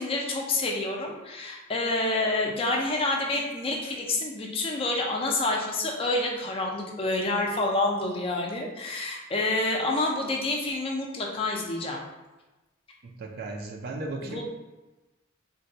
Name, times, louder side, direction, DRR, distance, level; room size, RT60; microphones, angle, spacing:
voice 1, 0.0-12.0 14.2-14.4, left 2 dB, 30° left, 0 dB, 0.4 m, -28 dB
voice 2, 13.0-14.4, right 2 dB, 50° right, 2 dB, 0.4 m, -36 dB
3.8 x 2.2 x 2.7 m, 1.1 s
head